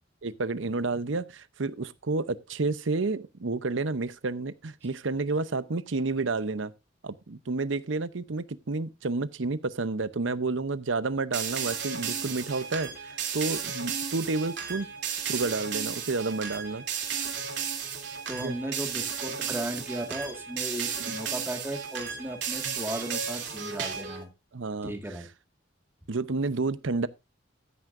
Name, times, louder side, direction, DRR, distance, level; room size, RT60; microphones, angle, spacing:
voice 1, 0.2-6.7 7.0-14.9 15.3-16.8 18.3-18.6 21.0-21.2 22.7-22.8 24.5-24.9 26.1-27.1, right 3 dB, 80° right, 0.8 m, -30 dB
sound 1, 11.3-24.2, right 7 dB, 60° right, 3.0 m, -34 dB
voice 2, 18.3-24.3 24.8-25.3, right 1 dB, 10° right, 1.8 m, -36 dB
14.0 x 9.6 x 2.6 m
head